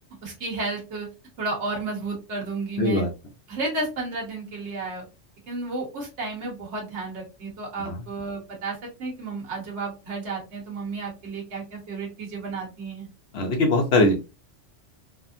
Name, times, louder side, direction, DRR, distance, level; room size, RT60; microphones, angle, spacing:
voice 1, 0.2-1.1 1.4-3.0 3.5-5.0 5.5-13.1, right 3 dB, 65° right, -2 dB, 1.3 m, -32 dB
voice 2, 2.8-3.1 7.9-8.0 13.3-14.1, left 2 dB, 60° left, 3 dB, 1.0 m, -21 dB
3.4 x 2.1 x 2.5 m, 0.28 s
omnidirectional pair, 1.2 m